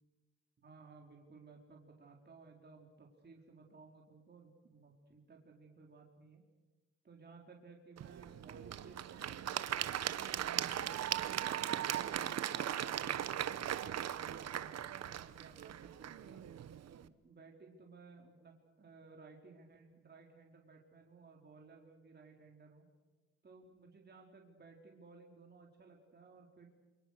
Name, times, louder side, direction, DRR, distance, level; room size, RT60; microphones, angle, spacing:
voice 1, 0.6-6.4 7.0-12.3 12.8-16.4 17.0-22.9 23.4-26.7, right 4 dB, 35° right, 0 dB, 4.3 m, -58 dB
Applause / Crowd, 8.0-17.0, right 10 dB, 60° right, 1.1 m, -38 dB
28.5 x 24.5 x 6.7 m, 1.2 s
cardioid pair, 90°, 30 cm